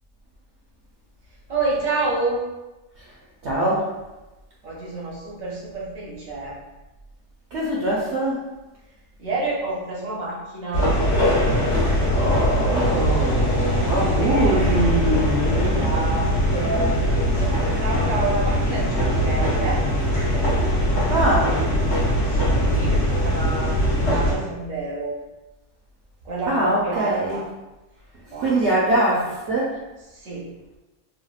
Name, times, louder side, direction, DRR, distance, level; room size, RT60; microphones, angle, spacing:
voice 1, 1.5-2.5 4.6-6.6 9.2-11.0 14.1-14.8 15.7-19.9 22.2-25.1 26.2-27.4 28.3-28.9 30.1-30.5, right 3 dB, 85° right, -4 dB, 1.2 m, -29 dB
voice 2, 3.4-3.9 7.5-8.4 12.1-16.0 17.5-17.8 21.1-21.6 26.5-27.4 28.4-29.7, right 1 dB, 65° right, -6 dB, 0.8 m, -23 dB
sound 1, 10.7-24.4, equal, 60° left, 1.1 m, -21 dB
3.4 x 2.1 x 2.3 m, 1.1 s
omnidirectional pair, 1.4 m